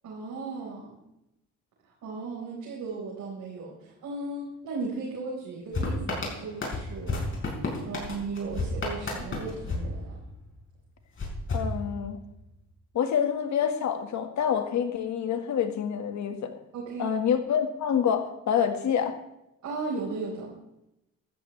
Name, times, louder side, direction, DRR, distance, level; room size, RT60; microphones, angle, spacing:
voice 1, 0.0-1.0 1.8-7.4 7.8-10.2 16.7-17.1 19.6-20.5, right 3 dB, 75° right, -6 dB, 4.6 m, -36 dB
sound 1, 5.7-10.6 11.2-12.4, left 2 dB, 40° left, 5.0 m, -32 dB
voice 2, 11.5-12.2 12.9-16.5 17.0-19.1, left 8 dB, 70° left, 7 dB, 1.7 m, -27 dB
14.5 x 13.0 x 3.3 m, 0.87 s
cardioid pair, 90°, 30 cm